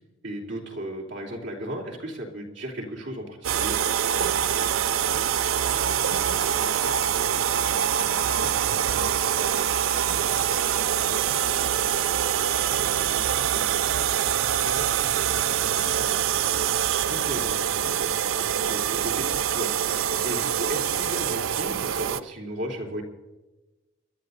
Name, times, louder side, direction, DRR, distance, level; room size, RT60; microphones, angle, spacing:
voice 1, 0.2-3.7 12.8-12.9 17.1-18.4 18.6-23.0, right 1 dB, 60° right, -2 dB, 3.2 m, -35 dB
sound 1, 3.4-22.2, right 9 dB, 80° right, 0.4 m, -25 dB
voice 2, 4.8-12.2 12.6-16.4, left 2 dB, 60° left, 6 dB, 1.3 m, -46 dB
29.0 x 12.5 x 2.7 m, 1.1 s
head